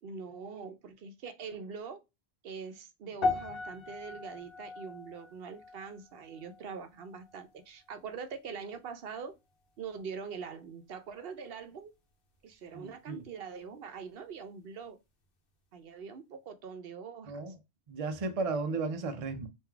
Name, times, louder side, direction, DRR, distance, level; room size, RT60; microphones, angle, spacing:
voice 1, 0.0-2.0 2.4-9.3 9.8-11.9 12.4-15.0 15.7-17.6, right 6 dB, 70° right, 0.8 m, -43 dB
sound 1, 3.2-7.6 7.9-8.3 8.9-9.0, left 3 dB, 60° left, 1.1 m, -38 dB
voice 2, 12.7-13.2 17.3-17.5 17.9-19.5, right 3 dB, 45° right, 0.5 m, -34 dB
3.8 x 2.7 x 4.3 m
omnidirectional pair, 1.1 m